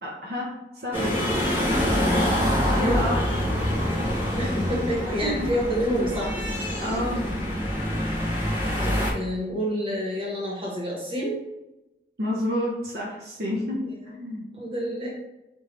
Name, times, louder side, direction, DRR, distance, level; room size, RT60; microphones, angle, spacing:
voice 1, 0.0-1.1 2.7-3.2 5.2-5.3 6.8-7.2 12.2-13.8 14.1-14.5, left 1 dB, 60° right, -5 dB, 0.8 m, -29 dB
sound 1, 0.9-9.1, equal, 15° right, 0.7 m, -25 dB
voice 2, 1.7-2.1 2.4-3.0 4.4-6.4 8.8-11.4 14.5-15.1, equal, 30° right, -5 dB, 1.3 m, -29 dB
5.2 x 2.6 x 3.2 m, 0.97 s
head